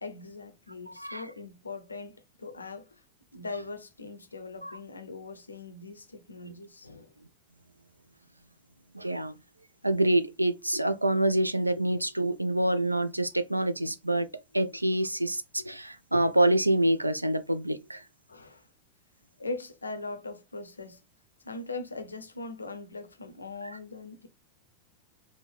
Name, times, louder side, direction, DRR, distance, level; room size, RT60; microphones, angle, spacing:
voice 1, 0.0-3.0 3.3-7.1 18.3-18.7 19.4-21.0 21.4-24.3, left 3 dB, 80° left, 0.5 m, -40 dB
voice 2, 0.9-1.2 4.6-4.7 8.9-9.3 9.8-14.3 14.5-18.0, right 1 dB, 85° right, 0.3 m, -26 dB
3.5 x 2.1 x 3.4 m
figure-of-eight pair, 90°, 0 cm